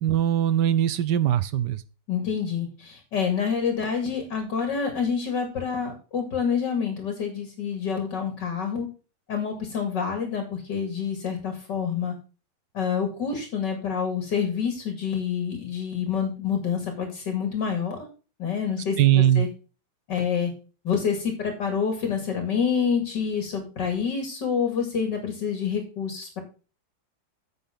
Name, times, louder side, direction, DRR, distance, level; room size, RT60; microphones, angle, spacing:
voice 1, 0.0-1.8 19.0-19.5, right 11 dB, 70° right, 15 dB, 1.2 m, -21 dB
voice 2, 2.1-8.9 9.3-12.1 12.7-18.1 18.4-19.5 20.1-20.5 20.8-26.4, left 6 dB, 60° left, 4 dB, 2.9 m, -27 dB
9.5 x 8.1 x 3.9 m, 0.35 s
omnidirectional pair, 2.2 m